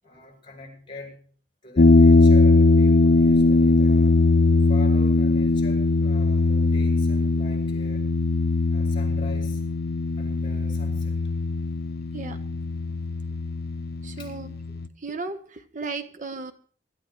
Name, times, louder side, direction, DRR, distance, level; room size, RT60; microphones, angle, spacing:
voice 1, 0.0-1.3 1.6-4.2 4.7-8.1 8.7-9.7 10.2-11.3 14.2-14.3, left 2 dB, 30° left, 2 dB, 7.5 m, -43 dB
sound 1, 1.8-14.9, left 3 dB, 60° left, 0.8 m, -20 dB
voice 2, 14.0-14.5 15.0-16.5, right 3 dB, 45° right, 8 dB, 1.0 m, -35 dB
25.0 x 14.0 x 3.1 m, 0.43 s
head